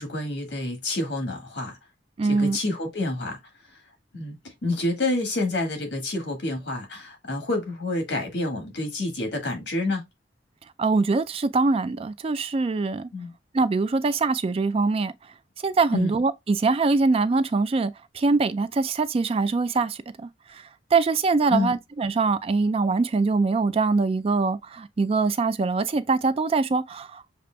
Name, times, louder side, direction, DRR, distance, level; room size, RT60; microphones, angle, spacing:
voice 1, 0.0-1.8 2.2-3.4 4.1-10.0 13.1-13.3 15.9-16.1 21.5-21.7, left 2 dB, 70° left, 1.7 m, -28 dB
voice 2, 2.2-2.6 10.8-13.1 13.5-15.1 15.6-20.6 20.9-27.2, right 4 dB, 35° right, 0.3 m, -23 dB
6.6 x 2.5 x 2.2 m
head